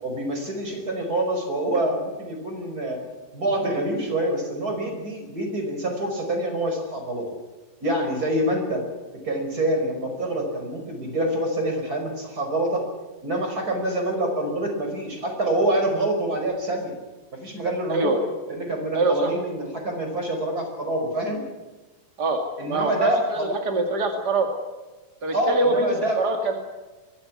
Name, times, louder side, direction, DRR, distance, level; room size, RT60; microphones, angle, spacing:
voice 1, 0.0-3.0 3.3-7.3 7.8-8.8 9.2-12.8 13.2-16.9 17.3-18.2 18.5-21.4 22.6-23.5 25.3-26.2, right 1 dB, 20° right, 4 dB, 5.1 m, -26 dB
voice 2, 18.9-19.3 22.2-22.4 22.7-24.5 25.2-25.9 26.1-26.5, right 2 dB, 45° right, 4 dB, 1.3 m, -24 dB
23.0 x 15.5 x 9.7 m, 1.2 s
omnidirectional pair, 5.4 m